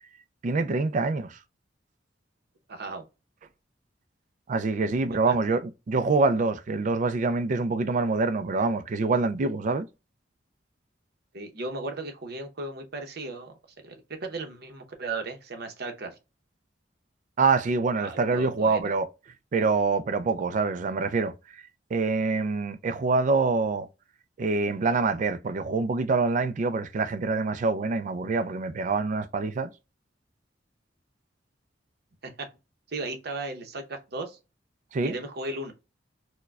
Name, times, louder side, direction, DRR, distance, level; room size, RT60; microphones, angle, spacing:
voice 1, 0.4-1.4 4.5-9.9 17.4-19.1 19.5-21.3 21.9-23.9 24.4-29.7 34.9-35.1, right 4 dB, 45° right, 0.4 m, -25 dB
voice 2, 2.7-3.0 5.3-5.4 11.3-13.5 13.8-16.1 18.0-18.9 32.2-32.5 32.9-34.4 35.0-35.7, right 3 dB, 60° right, 0.8 m, -36 dB
4.5 x 2.2 x 2.3 m
head